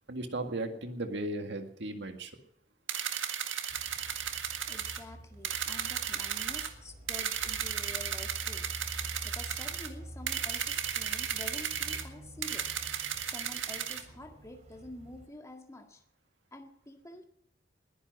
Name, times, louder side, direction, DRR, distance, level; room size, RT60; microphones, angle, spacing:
voice 1, 0.1-2.3, right 2 dB, 65° right, 5 dB, 2.0 m, -36 dB
sound 1, 2.9-5.0 5.4-6.7 7.1-9.9 10.3-12.0 12.4-14.0, right 9 dB, 90° right, 1.8 m, -34 dB
sound 2, 3.7-15.3, right 1 dB, 40° right, 3.7 m, -48 dB
voice 2, 4.7-8.7 9.0-12.7 13.2-16.0 16.5-17.2, left 1 dB, 15° left, 4 dB, 1.9 m, -48 dB
20.5 x 10.5 x 6.2 m, 0.74 s
head